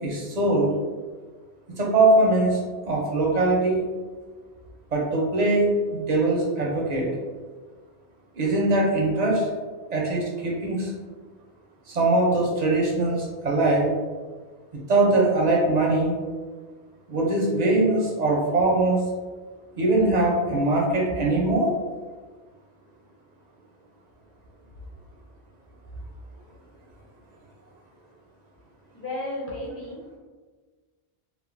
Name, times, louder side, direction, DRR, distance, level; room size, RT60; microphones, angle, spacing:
voice 1, 0.0-0.7 1.8-3.8 4.9-7.1 8.4-9.5 9.9-10.9 11.9-13.9 14.7-16.1 17.1-19.0 19.8-21.7, right 2 dB, 55° right, -2 dB, 0.5 m, -22 dB
voice 2, 28.9-30.2, left 1 dB, 20° left, -5 dB, 0.5 m, -33 dB
3.1 x 2.0 x 2.4 m, 1.4 s
omnidirectional pair, 1.1 m